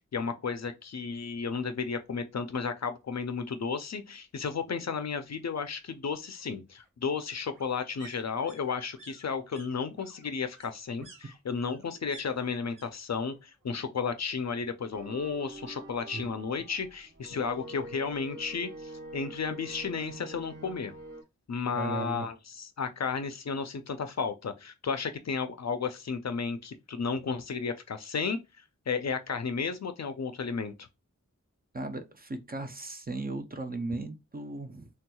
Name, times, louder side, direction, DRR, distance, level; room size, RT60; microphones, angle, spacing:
voice 1, 0.1-20.9 21.5-28.4 28.9-30.7, left 5 dB, 60° left, 0.4 m, -33 dB
sound 1, 2.0-2.1 2.5-2.6 2.8-3.8 5.1-12.9 13.1-13.7 14.0-15.0 15.3-15.4, right 3 dB, 80° right, 1.1 m, -56 dB
sound 2, 14.9-21.2, right 2 dB, 45° right, 0.8 m, -45 dB
voice 2, 21.7-22.3 31.7-34.9, right 2 dB, 30° right, 0.5 m, -36 dB
3.4 x 2.9 x 2.2 m
wide cardioid pair, 55°, 31 cm